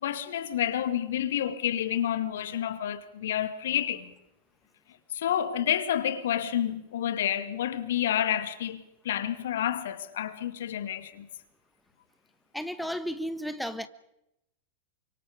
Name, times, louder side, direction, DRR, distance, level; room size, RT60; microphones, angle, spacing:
voice 1, 0.0-4.1 5.1-11.3, left 10 dB, 60° left, 2.1 m, -29 dB
voice 2, 12.5-13.9, equal, ahead, 1.3 m, -33 dB
29.0 x 25.5 x 5.1 m
figure-of-eight pair, 90°, 0 cm